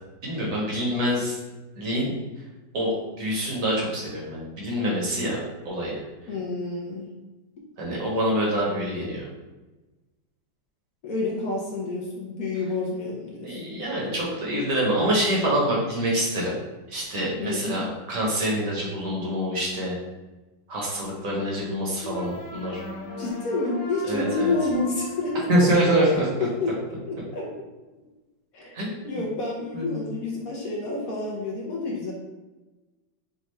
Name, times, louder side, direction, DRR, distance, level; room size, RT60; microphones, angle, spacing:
voice 1, 0.2-1.4 1.8-2.2 2.7-5.4 5.6-6.0 7.8-9.3 13.4-16.5 16.9-17.8 18.1-20.0 20.7-22.8 24.1-24.5 25.5-26.2 28.7-29.2 29.7-30.1, right 1 dB, 50° right, -4 dB, 1.4 m, -25 dB
voice 2, 6.3-7.1 11.0-13.6 17.4-17.8 23.2-25.7 26.4-26.7 27.0-27.5 28.5-32.1, left 3 dB, 60° left, -3 dB, 1.1 m, -29 dB
sound 1, 22.0-27.0, left 2 dB, 85° left, 0.6 m, -38 dB
5.4 x 2.4 x 3.2 m, 1.1 s
omnidirectional pair, 2.1 m